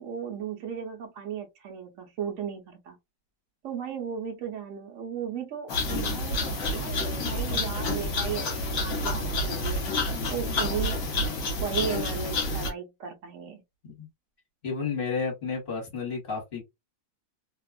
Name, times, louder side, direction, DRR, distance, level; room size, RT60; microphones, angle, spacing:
voice 1, 0.0-3.0 3.6-9.8 10.3-11.0 11.6-13.6, right 7 dB, 60° right, 0.9 m, -35 dB
sound 1, 5.7-12.7, left 2 dB, 55° left, 1.2 m, -29 dB
voice 2, 7.2-7.6 10.1-10.6 13.8-14.1 14.6-16.6, left 5 dB, 35° left, 1.2 m, -33 dB
2.9 x 2.3 x 2.3 m
omnidirectional pair, 1.9 m